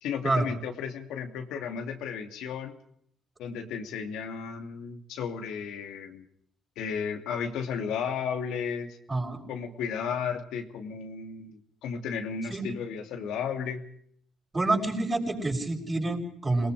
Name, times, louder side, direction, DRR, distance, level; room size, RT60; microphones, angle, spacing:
voice 1, 0.0-2.8 3.4-6.2 6.8-9.0 9.5-13.8, left 6 dB, 90° left, 5 dB, 2.7 m, -34 dB
voice 2, 9.1-9.4 12.5-12.6 14.5-16.7, right 2 dB, 25° right, 3 dB, 6.5 m, -27 dB
27.5 x 19.5 x 4.9 m, 0.65 s
cardioid pair, 90°, 0 cm